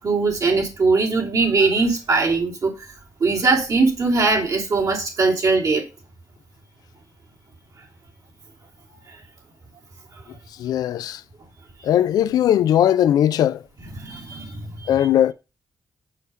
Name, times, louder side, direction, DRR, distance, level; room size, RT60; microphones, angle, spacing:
voice 1, 0.0-2.7 3.2-5.8 14.0-14.9, right 3 dB, 65° right, 3.0 m, -20 dB
voice 2, 10.6-11.2 11.8-13.6 14.9-15.3, left 11 dB, 85° left, 0.4 m, -18 dB
6.6 x 5.3 x 5.5 m
cardioid pair, 55°, 6 cm